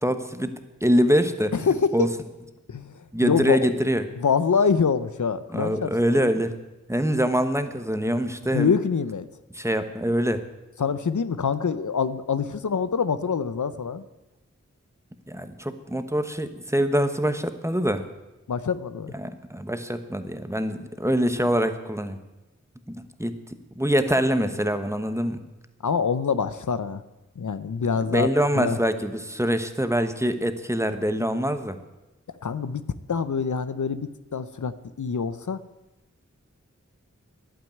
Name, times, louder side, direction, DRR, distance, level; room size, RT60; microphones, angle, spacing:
voice 1, 0.0-1.7 1.9-2.1 3.1-4.0 5.5-6.5 6.9-8.7 9.5-10.4 15.3-18.0 19.1-22.2 22.9-23.3 23.7-25.4 28.1-31.8, equal, 10° right, 8 dB, 1.1 m, -24 dB
voice 2, 1.5-2.1 2.7-3.7 4.2-6.2 8.5-9.3 10.8-14.0 18.5-19.1 25.8-27.0 27.4-28.3 28.6-28.8 32.4-35.6, left 6 dB, 80° left, 13 dB, 0.7 m, -25 dB
11.0 x 8.9 x 9.3 m, 1.0 s
wide cardioid pair, 55°, 29 cm